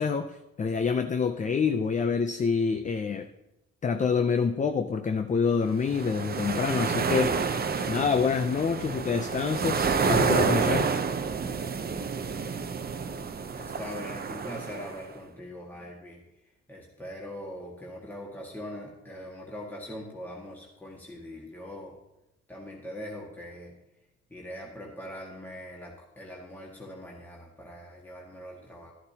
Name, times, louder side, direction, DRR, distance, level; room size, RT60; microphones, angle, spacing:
voice 1, 0.0-3.3 3.8-7.5 7.9-10.9, left 5 dB, 25° left, 8 dB, 0.5 m, -27 dB
sound 1, 5.8-15.0, right 5 dB, 30° right, 0.7 m, -29 dB
voice 2, 13.5-16.2 16.7-21.9 22.5-23.8 24.3-28.9, equal, 5° left, -3 dB, 1.7 m, -42 dB
11.5 x 11.0 x 2.9 m, 0.92 s
cardioid pair, 90°, 30 cm